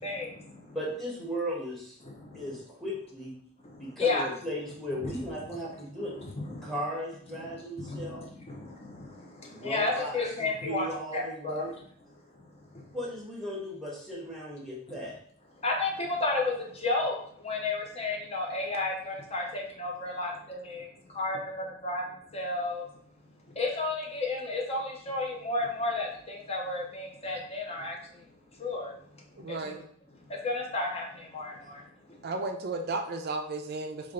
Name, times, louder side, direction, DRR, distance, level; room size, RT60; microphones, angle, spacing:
voice 1, 0.0-0.8 2.0-2.4 3.6-4.3 5.0-5.1 6.0-6.7 7.3-10.9 11.1-11.6 12.7-12.9 15.6-22.9 23.5-28.3 28.6-28.9 29.4-29.8 30.3-31.8 32.1-32.3, left 2 dB, 30° left, -1 dB, 0.7 m, -33 dB
voice 2, 0.7-2.0 2.3-3.3 3.8-6.1 6.6-8.2 9.5-10.2 10.6-11.7 12.9-15.1, equal, ahead, -5 dB, 1.0 m, -36 dB
voice 3, 29.4-29.8 32.2-34.1, right 3 dB, 50° right, 5 dB, 0.4 m, -34 dB
3.3 x 2.4 x 3.6 m, 0.62 s
head